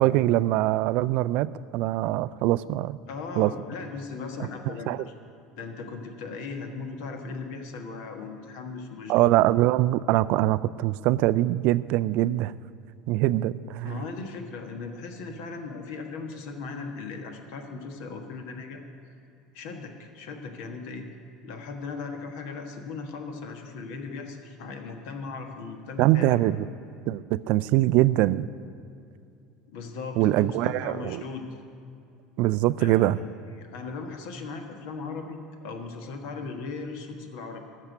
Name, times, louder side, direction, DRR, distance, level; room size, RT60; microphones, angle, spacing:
voice 1, 0.0-3.0 3.4-3.5 4.9-5.0 9.1-12.5 13.1-14.0 26.0-26.6 27.1-28.5 30.2-31.2 32.4-33.2, right 16 dB, 55° right, 16 dB, 0.4 m, -23 dB
voice 2, 3.1-5.1 5.6-9.4 13.8-18.8 19.5-21.1 21.4-26.4 29.7-31.5 32.8-33.1 33.5-37.6, left 4 dB, 65° left, 4 dB, 1.4 m, -38 dB
13.5 x 6.6 x 9.3 m, 2.5 s
hypercardioid pair, 70°, 3 cm